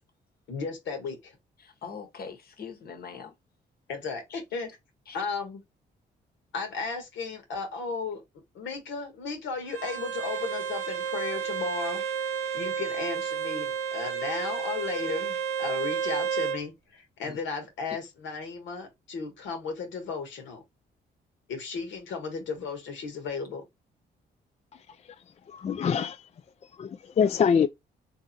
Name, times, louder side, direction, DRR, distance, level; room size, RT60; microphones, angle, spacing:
voice 1, 0.5-1.3 3.9-4.8 5.1-5.6 6.5-8.2 8.5-20.6 21.5-23.6, left 4 dB, 85° left, 1.4 m, -35 dB
voice 2, 1.6-3.3 5.1-5.2 15.9-16.1 17.2-17.4, left 6 dB, 55° left, 1.2 m, -42 dB
Bowed string instrument, 9.7-16.6, right 7 dB, 70° right, 1.0 m, -31 dB
voice 3, 25.5-26.2 26.8-27.7, left 7 dB, 35° left, 0.3 m, -24 dB
3.6 x 2.8 x 2.6 m
cardioid pair, 75°, 19 cm